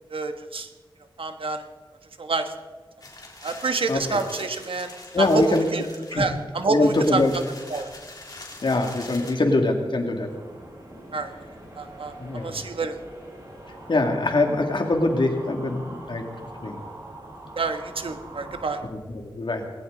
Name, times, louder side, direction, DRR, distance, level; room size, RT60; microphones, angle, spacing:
voice 1, 0.1-0.7 1.2-1.6 2.2-2.5 3.4-4.9 5.2-5.9 6.1-7.2 7.7-7.9 11.1-11.3 11.7-13.0 17.6-18.8, right 3 dB, 85° right, 7 dB, 1.4 m, -27 dB
sound 1, 3.0-9.3, left 2 dB, 45° left, 3.6 m, -43 dB
voice 2, 3.9-4.2 5.1-5.7 6.1-6.3 6.7-7.3 8.6-10.3 12.2-12.6 13.9-16.2 16.6-16.8 19.1-19.7, left 2 dB, 65° left, 3 dB, 2.4 m, -23 dB
sound 2, 10.2-18.8, right 1 dB, 40° right, 5.8 m, -43 dB
20.0 x 17.5 x 4.0 m, 1.3 s
wide cardioid pair, 75°, 9 cm